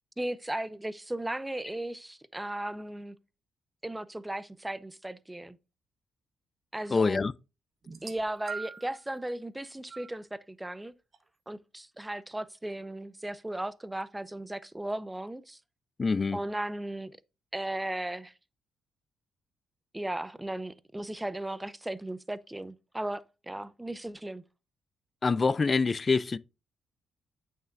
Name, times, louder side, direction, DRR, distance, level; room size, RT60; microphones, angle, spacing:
voice 1, 0.2-3.2 3.8-5.6 6.7-7.2 8.0-10.9 11.5-15.6 16.3-17.2 17.5-18.3 19.9-24.4, right 1 dB, 10° right, 0.6 m, -36 dB
voice 2, 6.9-7.3 16.0-16.4 25.2-26.4, left 4 dB, 35° left, 0.4 m, -25 dB
sound 1, 7.9-9.0 9.9-10.1 11.1-11.2, right 5 dB, 50° right, 1.4 m, -41 dB
8.6 x 6.5 x 2.6 m
supercardioid pair, 65°, 0 cm